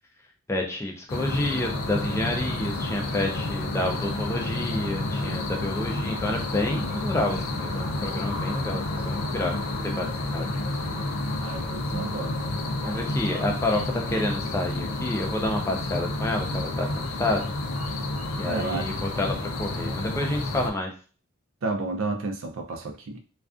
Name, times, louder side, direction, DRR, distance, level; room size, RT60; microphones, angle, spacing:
voice 1, 0.5-9.5 9.8-10.1 10.3-10.5 12.8-17.5 18.4-20.9, left 1 dB, 15° left, 2 dB, 0.3 m, -29 dB
sound 1, 1.1-20.7, left 2 dB, 80° left, 0.5 m, -30 dB
voice 2, 11.4-12.4 18.4-18.9 19.2-19.4 21.6-23.2, right 3 dB, 75° right, 4 dB, 0.4 m, -31 dB
2.3 x 2.3 x 2.4 m, 0.39 s
head